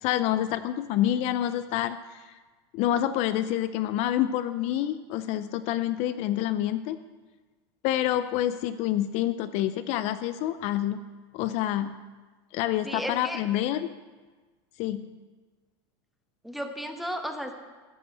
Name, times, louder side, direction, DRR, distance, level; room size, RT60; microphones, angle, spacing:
voice 1, 0.0-2.4 2.7-7.0 7.8-11.0 11.3-12.0 12.5-13.9 14.8-15.1, left 12 dB, 50° left, 12 dB, 0.5 m, -27 dB
voice 2, 12.8-13.4 16.4-17.5, equal, ahead, 5 dB, 1.1 m, -34 dB
13.0 x 5.3 x 7.9 m, 1.3 s
supercardioid pair, 125°, 14 cm